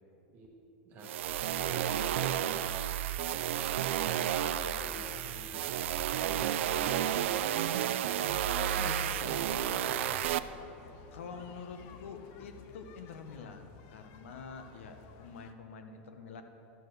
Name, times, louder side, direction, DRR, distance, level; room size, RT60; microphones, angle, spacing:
voice 1, 0.8-3.0 4.7-6.1 8.6-10.3, right 2 dB, 30° right, -2 dB, 1.2 m, -48 dB
sound 1, 1.0-10.4, right 11 dB, 80° right, 0.3 m, -31 dB
voice 2, 3.5-3.9 4.6-5.0 8.5-8.9 11.1-16.4, left 5 dB, 90° left, 6 dB, 0.9 m, -46 dB
sound 2, 4.6-15.5, left 6 dB, 40° left, 0.5 m, -54 dB
11.5 x 4.3 x 6.5 m, 2.9 s
supercardioid pair, 165°, 7 cm